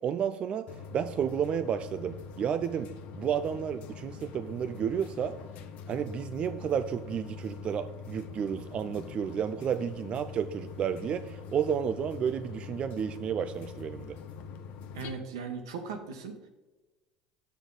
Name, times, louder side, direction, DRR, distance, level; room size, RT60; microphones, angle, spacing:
voice 1, 0.0-5.4 5.9-14.2, right 8 dB, 45° right, 10 dB, 0.4 m, -31 dB
sound 1, 0.7-15.1, left 6 dB, 60° left, 0.8 m, -44 dB
voice 2, 14.9-16.4, right 5 dB, 85° right, 5 dB, 1.2 m, -38 dB
8.0 x 6.3 x 3.9 m, 1.1 s
hypercardioid pair, 85°, 3 cm